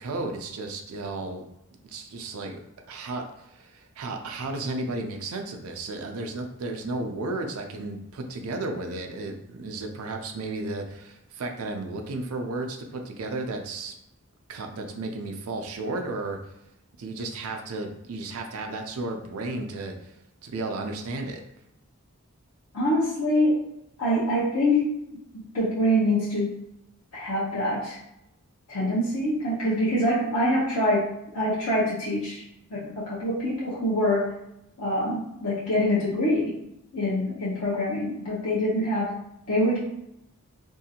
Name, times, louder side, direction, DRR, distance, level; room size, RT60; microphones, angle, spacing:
voice 1, 0.0-1.4 1.8-2.6 2.9-13.9 14.5-16.4 17.0-20.1 20.4-21.4, right 2 dB, 80° right, 4 dB, 0.4 m, -33 dB
voice 2, 22.7-23.7 24.0-26.6 27.1-28.0 28.7-32.4 32.7-34.3 34.8-36.6 36.9-39.2 39.5-39.8, left 1 dB, 85° left, -8 dB, 0.7 m, -25 dB
2.7 x 2.4 x 2.7 m, 0.83 s
head